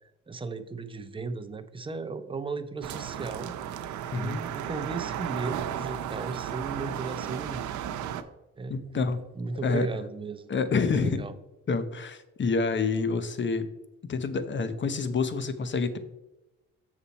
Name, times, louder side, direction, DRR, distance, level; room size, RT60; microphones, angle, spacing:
voice 1, 0.3-3.5 4.2-7.8 8.6-9.1 9.3-10.5 10.8-11.3, right 4 dB, 15° right, 9 dB, 0.7 m, -36 dB
sound 1, 2.8-8.2, right 10 dB, 75° right, 0.7 m, -34 dB
voice 2, 8.7-9.2 9.6-9.9 10.5-11.2 11.7-13.7 14.1-16.0, left 4 dB, 40° left, 12 dB, 0.9 m, -27 dB
7.1 x 6.8 x 4.2 m, 1.0 s
cardioid pair, 90°, 30 cm